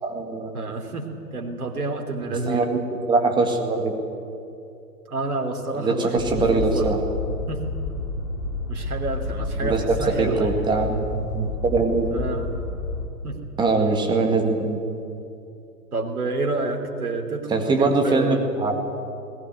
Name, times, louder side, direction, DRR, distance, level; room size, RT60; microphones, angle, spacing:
voice 1, 0.0-0.5 2.5-2.8 3.1-4.0 5.8-7.0 9.6-9.8 10.2-12.1 13.6-14.8 17.5-18.9, right 3 dB, 10° right, 4 dB, 1.8 m, -22 dB
voice 2, 0.5-2.7 5.1-6.9 7.5-7.7 8.7-10.7 12.1-12.5 13.2-13.4 15.9-18.4, right 2 dB, 60° right, 3 dB, 3.3 m, -29 dB
sound 1, 6.2-13.1, left 2 dB, 30° left, 2.6 m, -30 dB
20.0 x 18.0 x 9.6 m, 2.7 s
figure-of-eight pair, 120°, 48 cm